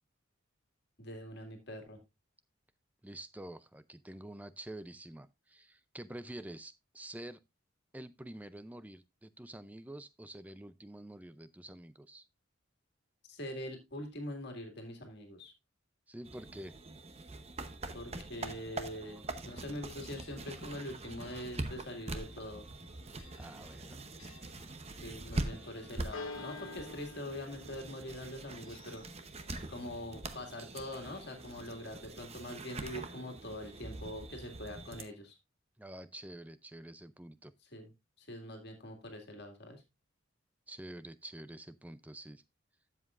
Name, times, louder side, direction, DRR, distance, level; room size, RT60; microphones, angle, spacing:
voice 1, 1.0-2.0 13.3-15.5 17.9-22.6 25.0-29.3 29.7-35.4 37.7-37.9 38.2-39.8, left 1 dB, 50° left, 2.1 m, -44 dB
voice 2, 3.0-7.4 7.9-12.3 16.1-16.8 23.4-24.0 35.8-37.5 40.7-42.4, right 1 dB, 5° right, 0.4 m, -48 dB
sound 1, 16.2-35.0, right 2 dB, 30° right, 0.8 m, -44 dB
Church bell, 19.6-34.6, left 3 dB, 80° left, 1.1 m, -54 dB
12.5 x 7.5 x 2.4 m
head